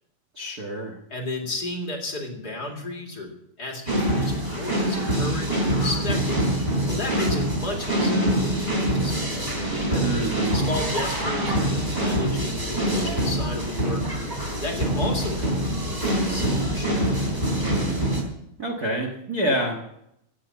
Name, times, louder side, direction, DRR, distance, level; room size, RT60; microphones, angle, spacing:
voice 1, 0.3-1.0 10.0-10.6 18.6-19.8, right 1 dB, 80° right, 2 dB, 0.8 m, -27 dB
voice 2, 1.1-3.3 3.6-6.4 6.9-10.1 10.5-14.1 14.6-17.0, left 2 dB, 30° left, 1 dB, 2.1 m, -33 dB
sound 1, 3.9-18.2, right 1 dB, 10° right, 3.0 m, -25 dB
16.5 x 8.5 x 7.0 m, 0.79 s
omnidirectional pair, 4.4 m